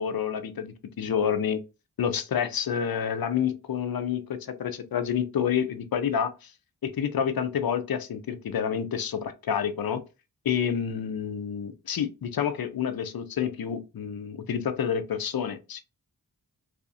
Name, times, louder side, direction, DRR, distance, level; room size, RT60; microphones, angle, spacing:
voice 1, 0.0-1.6 2.0-6.5 6.8-10.0 10.4-15.8, left 8 dB, 65° left, 0.5 m, -28 dB
2.5 x 2.4 x 2.5 m
wide cardioid pair, 70°, 39 cm